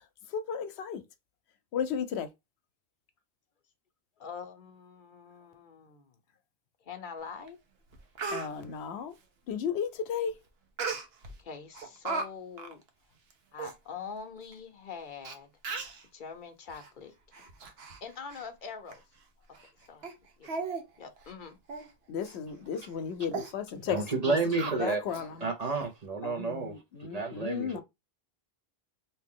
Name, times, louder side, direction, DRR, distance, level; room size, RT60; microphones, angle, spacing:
voice 1, 0.3-1.0 1.7-2.3 8.3-9.1 9.5-10.4 22.1-25.5 26.2-27.8, left 7 dB, 85° left, 0.9 m, -34 dB
voice 2, 4.2-6.2 6.8-7.6 11.4-12.8 13.5-15.9 16.1-17.5 18.0-19.0 19.9-20.1 20.4-20.6 21.0-21.6, left 6 dB, 55° left, 0.8 m, -44 dB
Speech, 7.5-7.6 7.9-8.5 10.8-11.3 11.7-12.3 12.6-12.7 13.3-13.4 13.6-13.7 14.5-14.6 15.2-15.3 15.6-16.0 16.7-16.9 17.3-18.0 18.3-18.5 18.9-19.0 19.5-19.7 20.0-20.1 20.4-20.8 21.2-21.3 21.7-21.9 22.2-22.4 22.8-22.9 23.3-23.5 24.6-25.2 25.6-25.7, right 4 dB, 75° right, 0.9 m, -36 dB
voice 3, 23.8-25.0 25.4-27.8, right 3 dB, 45° right, 0.7 m, -31 dB
2.9 x 2.7 x 3.6 m
omnidirectional pair, 1.1 m